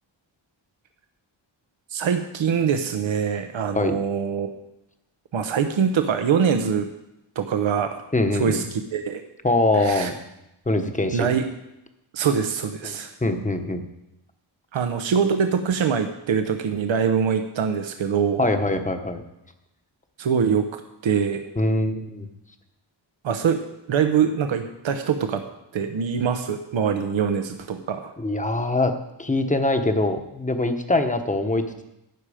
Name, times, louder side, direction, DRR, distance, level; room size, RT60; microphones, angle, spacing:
voice 1, 1.9-4.5 5.3-6.9 7.4-8.0 8.3-9.2 9.8-10.1 11.1-11.4 12.1-13.1 14.7-18.5 20.2-20.6 21.0-21.4 23.2-23.6 23.9-25.4 25.7-28.1, right 7 dB, 75° right, 6 dB, 0.9 m, -23 dB
voice 2, 8.1-8.7 9.4-10.1 10.7-11.3 12.8-12.9 13.2-13.8 18.4-19.2 21.6-22.3 28.2-28.9 29.2-31.8, left 2 dB, 15° left, 6 dB, 1.0 m, -23 dB
12.5 x 8.8 x 5.0 m, 0.90 s
wide cardioid pair, 120°, 47 cm